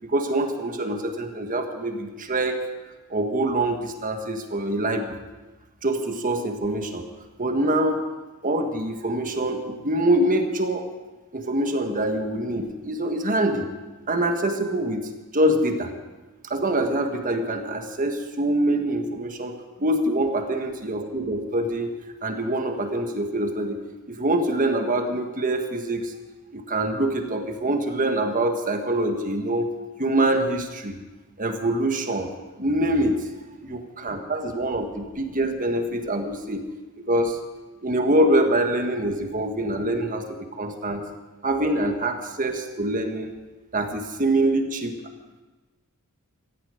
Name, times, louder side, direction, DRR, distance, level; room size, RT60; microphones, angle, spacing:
voice 1, 0.0-2.7 3.1-5.2 5.8-7.1 7.4-8.0 8.4-10.9 11.3-13.7 14.1-15.9 16.4-23.8 24.1-26.1 26.5-29.7 30.0-31.0 31.4-33.2 33.6-36.6 37.1-37.4 37.8-41.1 41.4-43.3 43.7-45.0, right 1 dB, 40° right, 5 dB, 1.5 m, -25 dB
16.0 x 14.5 x 5.0 m, 1.2 s
head